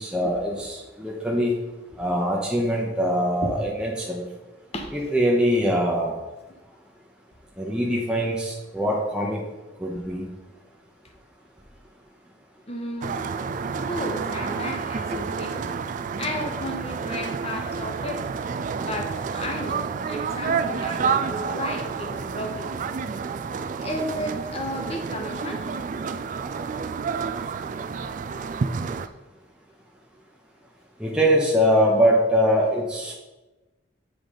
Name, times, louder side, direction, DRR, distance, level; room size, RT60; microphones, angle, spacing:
voice 1, 0.0-1.5 2.0-4.2 4.9-6.2 7.6-9.4 9.8-10.3 31.0-33.2, equal, 5° right, -3 dB, 0.8 m, -23 dB
voice 2, 12.7-13.3 13.8-15.8 16.2-18.3 18.8-22.7 23.8-25.7, left 1 dB, 35° left, 3 dB, 1.0 m, -33 dB
sound 1, 13.0-29.1, right 5 dB, 45° right, 0.3 m, -29 dB
7.4 x 3.9 x 5.0 m, 1.1 s
head